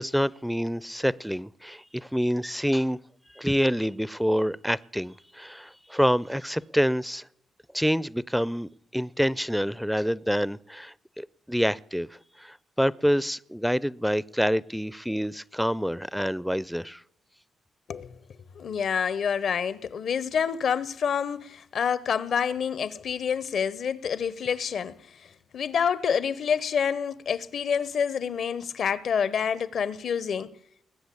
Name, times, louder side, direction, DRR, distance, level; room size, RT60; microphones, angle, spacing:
voice 1, 0.0-3.0 3.3-7.3 7.7-17.0, equal, ahead, 0.5 m, -27 dB
voice 2, 18.5-30.5, left 7 dB, 70° left, 0.9 m, -28 dB
20.0 x 7.8 x 8.4 m
supercardioid pair, 60°, 0 cm